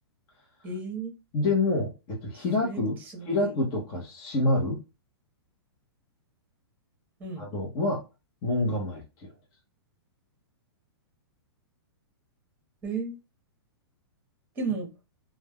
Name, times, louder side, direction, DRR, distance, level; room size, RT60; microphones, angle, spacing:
voice 1, 0.6-1.1 2.3-2.8 3.1-3.6 7.2-7.4 12.8-13.2 14.6-14.9, right 4 dB, 15° right, 1.0 m, -33 dB
voice 2, 1.3-3.0 3.2-4.8 7.4-8.0 8.4-9.3, left 2 dB, 30° left, 0.8 m, -27 dB
3.2 x 2.2 x 2.2 m
hypercardioid pair, 135°, 14 cm